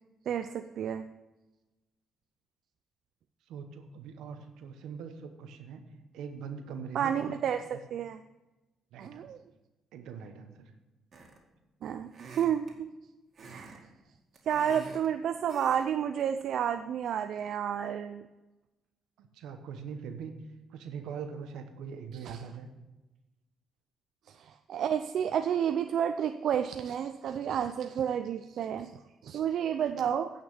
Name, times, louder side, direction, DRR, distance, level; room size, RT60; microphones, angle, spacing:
voice 1, 0.3-1.0 6.9-8.2 9.0-9.4 11.8-12.7 13.4-13.9 14.5-18.3 22.2-22.4 24.3-28.9 29.2-30.3, right 9 dB, 70° right, 8 dB, 0.4 m, -31 dB
voice 2, 3.5-5.8 6.1-7.3 7.7-7.8 8.9-9.3 9.9-10.7 19.2-20.3 20.7-22.7, right 6 dB, 85° right, 7 dB, 1.2 m, -42 dB
sound 1, 11.1-11.5 12.1-12.8 13.3-13.8 14.1-15.1 15.5-15.9 16.2-16.4, right 4 dB, 50° right, 2.2 m, -48 dB
9.4 x 5.9 x 7.1 m, 1.1 s
cardioid pair, 90°, 0 cm